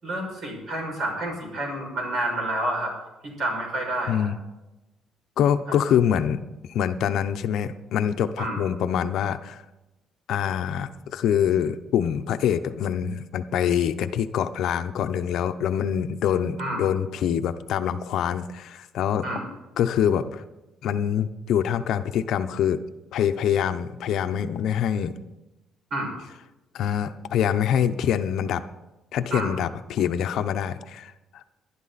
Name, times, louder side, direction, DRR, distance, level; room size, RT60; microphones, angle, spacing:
voice 1, 0.0-2.9 3.2-4.3 5.7-5.8 8.4-8.7 16.6-16.9 19.2-19.5 25.9-26.1 29.3-29.5, right 1 dB, 45° right, 1 dB, 5.9 m, -29 dB
voice 2, 4.1-4.4 5.4-6.4 6.7-9.6 10.3-19.3 19.8-20.4 20.8-22.8 23.1-25.1 26.7-28.6 29.1-31.4, left 9 dB, 65° left, 9 dB, 0.8 m, -25 dB
19.5 x 11.0 x 4.1 m, 1.0 s
cardioid pair, 150°, 0 cm